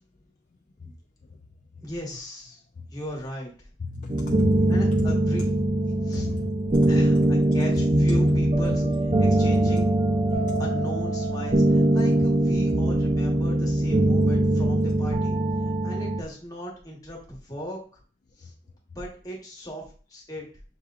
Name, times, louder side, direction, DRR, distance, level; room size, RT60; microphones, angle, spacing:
voice 1, 1.8-2.6 2.9-3.7 4.7-5.8 6.0-6.4 6.9-9.9 10.6-15.4 15.6-17.8 18.4-18.5 18.9-20.5, equal, 20° left, 1.1 m, -38 dB
voice 2, 3.9-4.7 5.9-7.7 10.5-10.6, left 3 dB, 45° left, 0.4 m, -36 dB
sound 1, 4.1-16.2, right 1 dB, 30° right, 0.5 m, -22 dB
6.7 x 2.8 x 2.4 m
head